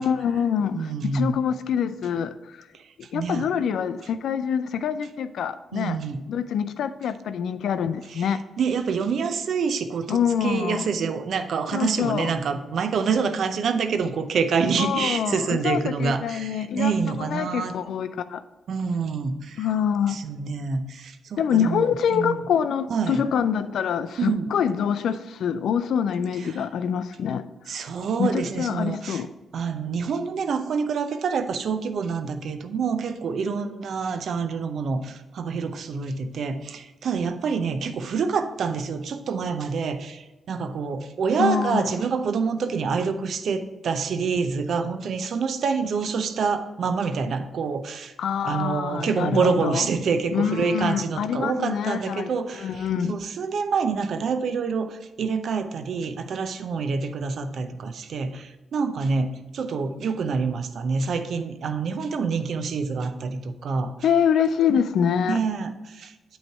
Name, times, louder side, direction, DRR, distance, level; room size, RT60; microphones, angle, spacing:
voice 1, 0.0-2.6 3.1-6.0 6.3-8.4 10.1-10.9 11.7-12.3 14.8-18.4 19.6-20.2 21.4-27.5 28.2-29.3 41.4-41.9 48.2-49.9 50.3-52.3 52.6-53.1 64.0-65.4, left 8 dB, 75° left, 0.3 m, -25 dB
voice 2, 0.7-1.4 2.7-2.8 3.1-3.5 5.7-6.3 8.1-17.7 18.7-19.6 20.1-21.8 22.1-22.4 22.9-23.2 24.2-24.5 26.5-26.6 27.7-29.2 29.5-48.1 48.4-63.9 65.3-66.4, right 5 dB, 65° right, 0.5 m, -27 dB
8.7 x 3.2 x 4.5 m
supercardioid pair, 45°, 0 cm